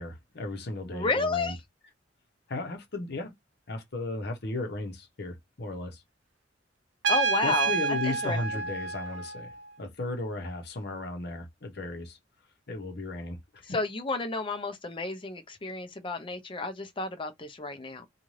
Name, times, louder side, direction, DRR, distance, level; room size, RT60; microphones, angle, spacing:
voice 1, 0.0-1.5 2.5-3.3 3.7-6.0 7.4-12.2 12.7-13.8, left 2 dB, 60° left, 0.9 m, -35 dB
voice 2, 0.9-1.6 7.1-7.7 8.0-8.4 13.7-18.1, left 3 dB, 30° left, 0.6 m, -31 dB
Trumpet, 7.0-9.7, right 5 dB, 75° right, 0.5 m, -29 dB
2.6 x 2.4 x 3.1 m
head